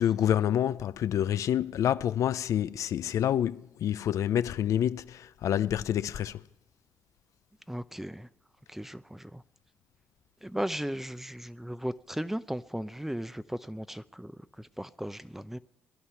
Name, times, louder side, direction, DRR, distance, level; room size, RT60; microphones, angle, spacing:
voice 1, 0.0-6.4, left 10 dB, 70° left, 0.5 m, -28 dB
voice 2, 7.7-8.3 8.7-9.4 10.4-14.3 14.8-15.6, equal, 5° right, 0.6 m, -36 dB
20.0 x 11.0 x 5.8 m
cardioid pair, 85°, 6 cm